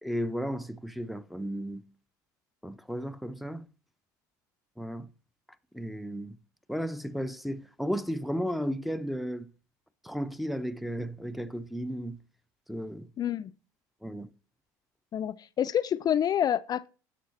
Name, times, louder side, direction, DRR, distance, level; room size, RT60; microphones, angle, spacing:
voice 1, 0.0-1.8 2.6-3.7 4.8-5.1 5.7-6.4 6.7-9.5 10.0-12.2 12.7-13.1 14.0-14.3, equal, ahead, 0.6 m, -34 dB
voice 2, 13.2-13.5 15.1-16.9, left 10 dB, 40° left, 0.5 m, -28 dB
11.0 x 6.4 x 4.1 m
supercardioid pair, 85°, 10 cm